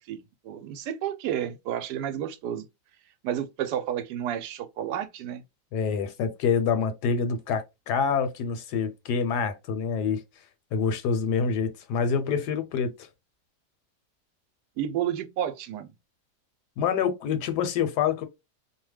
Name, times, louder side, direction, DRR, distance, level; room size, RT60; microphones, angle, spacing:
voice 1, 0.0-2.7 3.2-5.4 14.8-15.9, right 10 dB, 80° right, 1.1 m, -31 dB
voice 2, 5.7-10.2 10.7-12.9 16.8-18.2, left 6 dB, 80° left, 1.2 m, -26 dB
2.8 x 2.1 x 3.2 m
omnidirectional pair, 1.8 m